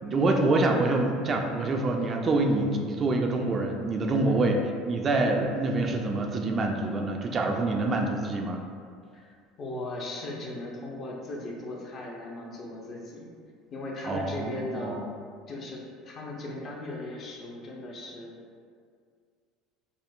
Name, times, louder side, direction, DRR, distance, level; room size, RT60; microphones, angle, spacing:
voice 1, 0.0-4.6 4.9-8.6 14.1-15.0, right 2 dB, 35° right, 2 dB, 0.3 m, -26 dB
voice 2, 9.1-13.3 13.7-15.0 15.5-18.3, left 2 dB, 45° left, -2 dB, 0.6 m, -38 dB
3.6 x 2.0 x 2.4 m, 2.1 s
hypercardioid pair, 75°, 0 cm